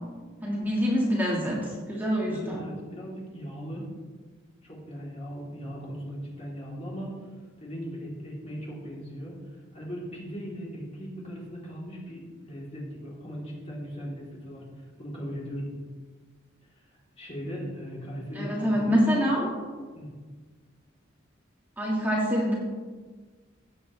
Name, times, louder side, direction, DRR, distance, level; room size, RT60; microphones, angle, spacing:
voice 1, 0.4-2.6 18.3-19.5 21.8-22.5, equal, 10° right, -4 dB, 1.7 m, -25 dB
voice 2, 2.3-3.9 4.6-7.3 7.6-15.7 16.7-16.9 17.2-19.0 19.9-20.1, equal, 35° left, -5 dB, 3.3 m, -38 dB
16.5 x 7.9 x 3.3 m, 1.4 s
head